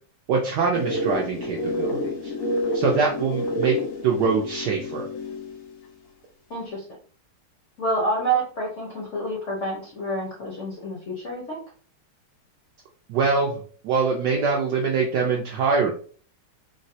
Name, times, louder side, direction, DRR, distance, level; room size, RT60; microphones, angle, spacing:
voice 1, 0.3-2.3 2.7-3.8 4.0-5.1 13.1-15.9, right 5 dB, 80° right, -1 dB, 0.9 m, -24 dB
sound 1, 0.7-5.7, left 1 dB, 90° left, 1.9 m, -29 dB
voice 2, 6.5-6.8 7.8-11.6, right 2 dB, 70° left, -3 dB, 0.7 m, -28 dB
3.9 x 2.0 x 2.6 m, 0.43 s
omnidirectional pair, 2.3 m